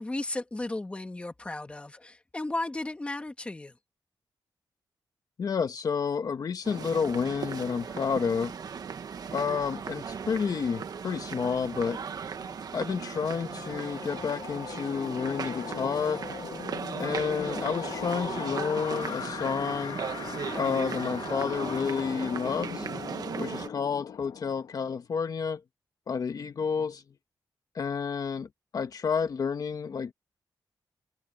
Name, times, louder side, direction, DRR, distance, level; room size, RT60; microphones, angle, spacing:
voice 1, 0.0-3.7, left 2 dB, 15° left, 1.4 m, -35 dB
voice 2, 5.4-8.5 9.3-12.0 12.7-16.2 17.0-20.0 20.6-22.9 23.4-25.6 26.1-27.0 27.7-30.1, left 6 dB, 50° left, 1.3 m, -30 dB
sound 1, 6.6-23.7, right 6 dB, 55° right, 1.3 m, -37 dB
sound 2, 12.3-25.0, left 8 dB, 85° left, 1.4 m, -40 dB
wide cardioid pair, 155°, 8 cm